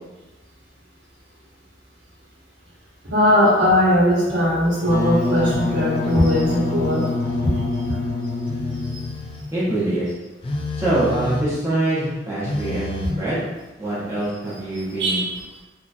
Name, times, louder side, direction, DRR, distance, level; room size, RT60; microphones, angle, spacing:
voice 1, 3.1-7.1 7.4-7.5 7.9-8.0 8.9-9.0 15.0-15.2, left 1 dB, 70° right, -6 dB, 1.1 m, -19 dB
Wind instrument woodwind instrument, 4.8-9.3, left 2 dB, 55° left, 0.9 m, -25 dB
Telephone, 7.2-7.5 8.4-9.5 10.4-11.7 12.4-13.1, left 1 dB, 30° left, 0.3 m, -30 dB
voice 2, 9.5-10.1 10.7-13.4 13.8-15.3, right 1 dB, 15° right, -9 dB, 0.9 m, -24 dB
3.8 x 2.7 x 2.4 m, 1.1 s
head